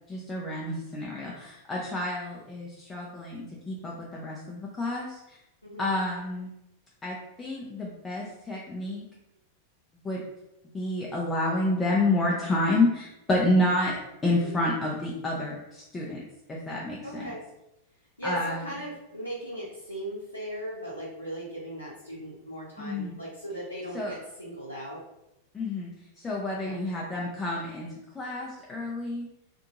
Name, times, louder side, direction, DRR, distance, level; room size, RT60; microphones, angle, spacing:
voice 1, 0.1-5.4 5.8-6.5 7.0-9.0 10.0-10.2 10.7-17.3 18.2-18.7 22.8-23.2 23.9-24.1 25.5-25.9 26.2-29.3, left 1 dB, 15° left, -3 dB, 0.5 m, -29 dB
voice 2, 5.6-5.9 14.3-14.7 17.0-17.4 18.2-25.0 26.6-26.8, right 1 dB, 85° left, -7 dB, 0.6 m, -38 dB
2.8 x 2.6 x 2.4 m, 0.90 s
figure-of-eight pair, 90°, 0 cm